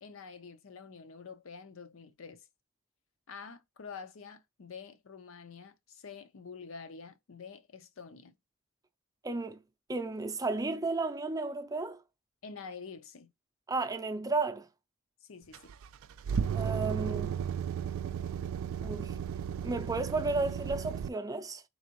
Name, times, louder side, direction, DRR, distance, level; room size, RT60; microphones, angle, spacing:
voice 1, 0.0-2.5 3.3-8.3 12.4-13.3 15.2-15.7, left 5 dB, 70° left, 0.6 m, -47 dB
voice 2, 9.2-9.6 9.9-12.0 13.7-14.7 16.5-17.4 18.8-19.1 19.6-21.6, right 3 dB, 15° right, 0.5 m, -33 dB
sound 1, 15.5-21.1, right 8 dB, 75° right, 0.3 m, -34 dB
4.0 x 3.4 x 2.9 m
head